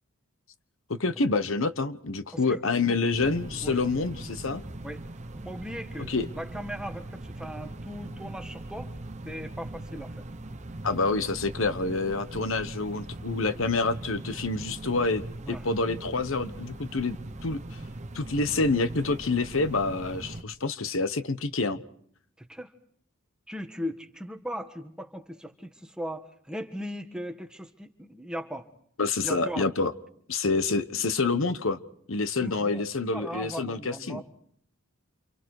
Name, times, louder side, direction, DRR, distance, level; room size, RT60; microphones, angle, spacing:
voice 1, 1.0-4.6 6.1-6.3 10.8-15.2 15.5-17.2 17.4-17.8 18.1-21.8 29.0-29.9 30.3-31.8 32.1-34.2, left 3 dB, 65° left, 12 dB, 1.1 m, -27 dB
sound 1, 3.1-20.4, right 1 dB, 35° right, 1.0 m, -40 dB
voice 2, 5.4-8.9 9.2-10.2 15.4-15.7 22.4-22.7 23.5-28.7 29.2-29.7 32.4-34.3, equal, 5° right, 6 dB, 1.5 m, -38 dB
28.5 x 28.5 x 4.8 m, 0.63 s
head